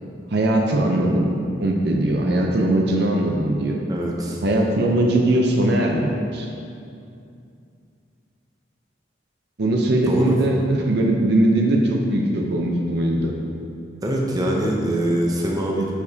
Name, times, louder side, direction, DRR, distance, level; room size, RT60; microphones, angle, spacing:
voice 1, 0.0-1.3 1.6-3.8 4.4-6.5 9.6-13.4, right 1 dB, 55° right, 1 dB, 0.6 m, -20 dB
voice 2, 3.9-4.4 10.0-10.4 14.0-15.9, right 1 dB, 20° right, -2 dB, 0.7 m, -23 dB
9.4 x 4.9 x 2.8 m, 2.5 s
head